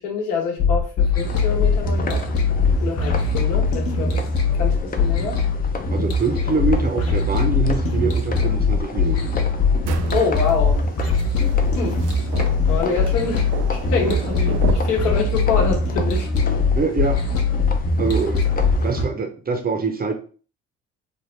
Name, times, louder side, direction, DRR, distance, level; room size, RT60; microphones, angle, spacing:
voice 1, 0.0-2.2 2.8-4.2 4.5-5.4 10.1-10.8 11.7-12.0 12.7-16.3, left 5 dB, 75° left, 0 dB, 1.2 m, -26 dB
sound 1, 0.6-19.0, left 4 dB, 50° left, 0.9 m, -21 dB
sound 2, 1.2-19.1, left 4 dB, 30° left, 0.5 m, -33 dB
voice 2, 5.9-9.4 16.8-17.2 18.0-18.5 18.8-20.1, right 4 dB, 30° right, 5 dB, 0.7 m, -24 dB
sound 3, 9.8-15.0, right 8 dB, 70° right, 0.5 m, -33 dB
3.4 x 2.0 x 3.2 m, 0.39 s
supercardioid pair, 70°, 32 cm